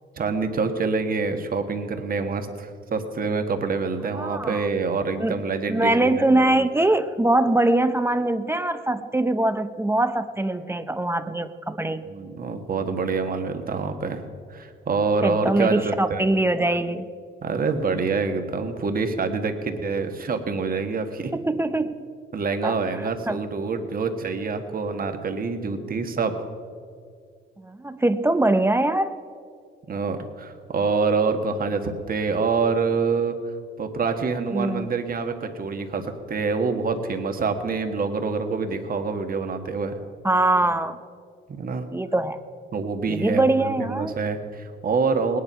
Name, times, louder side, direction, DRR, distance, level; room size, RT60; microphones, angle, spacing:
voice 1, 0.1-6.3 12.0-14.2 14.5-16.2 17.4-21.3 22.3-26.3 29.9-33.4 33.8-40.0 41.5-41.9 42.7-45.4, right 4 dB, 45° right, 7 dB, 1.5 m, -26 dB
voice 2, 4.1-4.7 5.2-5.4 5.7-12.0 15.2-17.1 21.3-21.9 22.6-23.4 27.6-29.2 34.5-34.9 40.2-41.0 41.9-42.4 43.1-44.2, right 2 dB, 10° right, 10 dB, 0.6 m, -22 dB
18.5 x 10.0 x 5.6 m, 2.2 s
cardioid pair, 90°, 20 cm